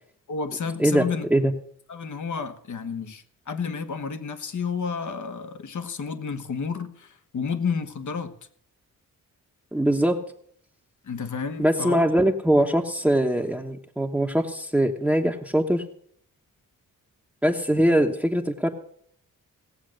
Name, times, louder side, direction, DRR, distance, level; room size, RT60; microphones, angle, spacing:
voice 1, 0.3-1.2 1.9-8.3 11.0-12.0, left 5 dB, 60° left, 1.3 m, -31 dB
voice 2, 0.8-1.5 9.7-10.2 11.6-15.8 17.4-18.7, right 1 dB, 5° right, 1.1 m, -22 dB
17.5 x 7.5 x 6.5 m
cardioid pair, 65°, 35 cm